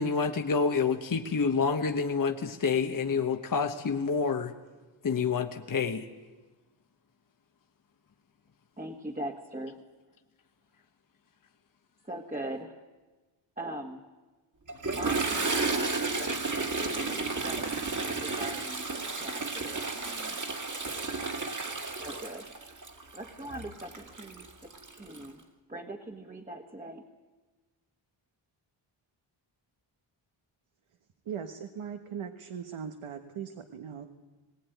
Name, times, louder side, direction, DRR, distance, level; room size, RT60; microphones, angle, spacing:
voice 1, 0.0-4.5 5.0-6.0, left 5 dB, 40° left, 5 dB, 1.1 m, -28 dB
voice 2, 8.8-9.8 12.0-12.8 13.6-14.0 14.9-17.7 18.2-20.8 21.7-22.5 23.1-25.4 25.7-27.0, right 1 dB, 15° right, 0 dB, 1.6 m, -42 dB
Toilet flush, 14.7-25.3, right 3 dB, 35° right, 2.2 m, -32 dB
voice 3, 31.2-34.1, right 7 dB, 80° right, 6 dB, 1.3 m, -39 dB
20.0 x 18.0 x 9.2 m, 1.2 s
cardioid pair, 85°, 50 cm